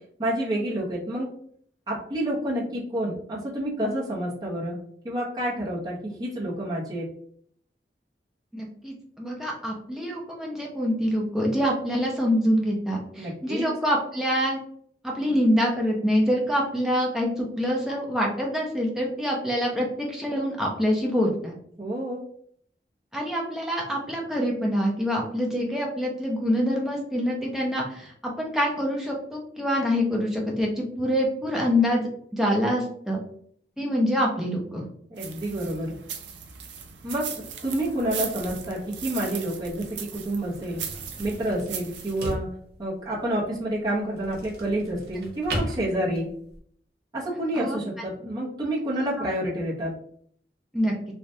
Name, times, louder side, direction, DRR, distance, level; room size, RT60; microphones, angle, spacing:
voice 1, 0.2-1.3 1.9-4.8 5.0-7.1 13.2-13.7 21.8-22.2 35.1-35.9 37.0-37.2 37.6-40.8 41.2-42.5 42.8-46.3 47.1-49.9, right 1 dB, 25° right, -7 dB, 0.9 m, -29 dB
voice 2, 8.5-14.6 15.0-21.5 23.1-32.1 32.3-33.2 33.8-34.9 47.6-47.8 50.7-50.9, equal, 5° right, -2 dB, 0.6 m, -25 dB
sound 1, 35.2-42.3, right 7 dB, 85° right, 0.5 m, -38 dB
sound 2, 37.9-46.6, right 1 dB, 60° right, 0.8 m, -38 dB
3.2 x 2.4 x 2.7 m, 0.64 s
head